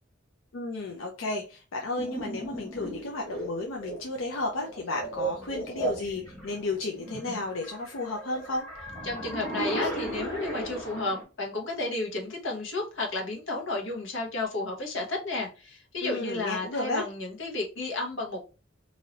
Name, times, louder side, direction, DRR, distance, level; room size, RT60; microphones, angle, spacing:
voice 1, 0.5-8.7 16.0-17.1, left 2 dB, 90° left, 0.5 m, -33 dB
sound 1, 2.0-11.2, right 2 dB, 5° left, 1.7 m, -36 dB
voice 2, 9.0-18.4, left 2 dB, 70° left, 1.0 m, -32 dB
3.0 x 2.7 x 2.8 m
head